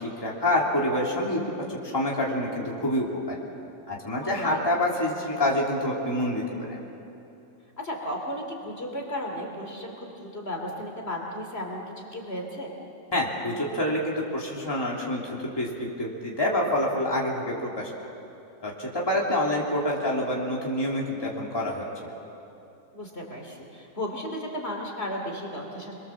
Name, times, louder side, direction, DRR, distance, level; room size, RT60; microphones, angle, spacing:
voice 1, 0.0-1.4 1.7-3.3 3.9-6.8 13.1-17.9 18.6-21.8, left 1 dB, 15° left, -3 dB, 3.0 m, -27 dB
voice 2, 4.2-4.6 7.8-12.7 22.9-26.0, left 1 dB, 40° left, 0 dB, 3.1 m, -34 dB
28.0 x 22.5 x 7.4 m, 2.8 s
omnidirectional pair, 1.7 m